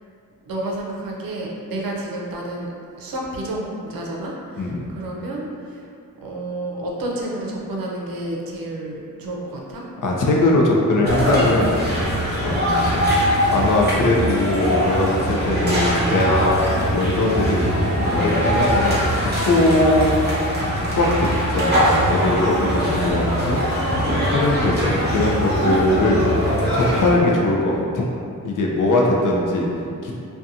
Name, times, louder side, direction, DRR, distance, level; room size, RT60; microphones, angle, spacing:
voice 1, 0.5-2.7 3.0-5.9 6.2-9.8 29.3-29.9, right 1 dB, 80° right, -2 dB, 0.5 m, -30 dB
voice 2, 4.6-4.9 10.0-11.7 12.1-12.2 12.4-13.1 13.5-16.5 16.9-20.1 20.9-23.6 24.1-26.2 26.7-28.1 28.4-29.7 30.0-30.1, left 2 dB, 65° left, -2 dB, 0.5 m, -20 dB
sound 1, 11.0-27.1, equal, 30° right, 0.7 m, -21 dB
2.5 x 2.2 x 2.7 m, 2.4 s
wide cardioid pair, 95°, 34 cm